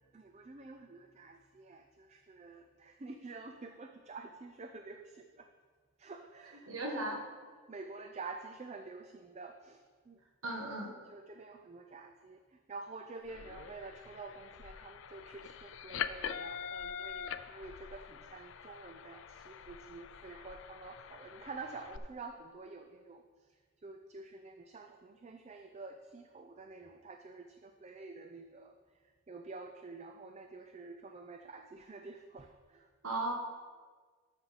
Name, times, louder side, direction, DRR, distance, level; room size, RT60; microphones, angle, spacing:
voice 1, 0.0-5.5 6.0-7.2 7.7-10.2 11.1-23.2 23.8-28.8 29.3-32.9, right 3 dB, 30° right, 5 dB, 0.4 m, -49 dB
voice 2, 6.7-7.2 10.4-10.9 33.0-33.3, right 2 dB, 75° right, 0 dB, 1.4 m, -36 dB
sound 1, 13.2-22.0, left 8 dB, 65° left, 0.4 m, -44 dB
13.0 x 6.3 x 4.1 m, 1.5 s
head